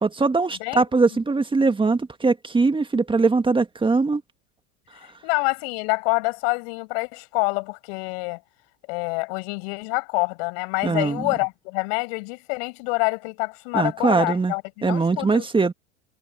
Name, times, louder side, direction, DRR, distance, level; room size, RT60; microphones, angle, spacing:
voice 1, 0.0-4.2 10.8-11.2 13.7-14.5 14.8-15.7, right 3 dB, 15° right, 1.9 m, -21 dB
voice 2, 5.2-8.4 8.9-15.5, left 32 dB, 65° left, 6.7 m, -26 dB
hypercardioid pair, 85°, 33 cm